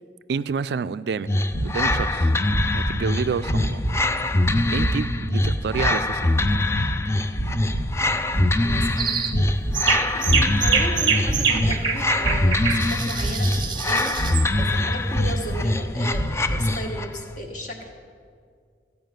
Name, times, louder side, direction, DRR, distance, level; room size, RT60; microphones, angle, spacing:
voice 1, 0.3-1.3 1.6-2.3 2.7-3.8 4.7-6.3 11.5-11.7, right 5 dB, 70° right, 15 dB, 0.3 m, -28 dB
sound 1, 1.3-17.2, left 2 dB, 15° left, 0.3 m, -24 dB
sound 2, 1.5-2.1 2.4-3.1 3.4-4.0 4.4-5.0 5.4-5.9 6.3-7.0 7.3-8.0 8.3-8.9 9.2-9.8 10.2-10.9 11.2-11.8 12.2-12.7 13.2-13.8 14.1-14.7 15.1-15.6 16.1-16.7, right 1 dB, 70° left, 1.7 m, -27 dB
voice 2, 8.6-17.9, equal, 45° left, 2 dB, 1.5 m, -35 dB
sound 3, 9.0-9.3 9.7-14.5, right 6 dB, 25° right, 0.7 m, -25 dB
14.0 x 5.4 x 9.1 m, 2.1 s
head